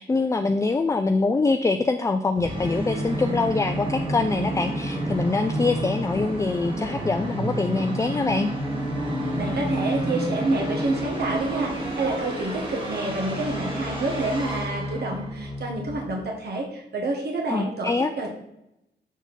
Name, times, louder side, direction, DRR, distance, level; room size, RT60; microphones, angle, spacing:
voice 1, 0.0-8.5 17.5-18.1, left 3 dB, 15° left, 7 dB, 0.3 m, -24 dB
Musical instrument, 2.4-16.1, right 1 dB, 30° right, 1.9 m, -29 dB
voice 2, 9.3-18.3, right 2 dB, 60° right, 0 dB, 1.3 m, -28 dB
7.2 x 4.1 x 4.0 m, 0.85 s
wide cardioid pair, 120°, 19 cm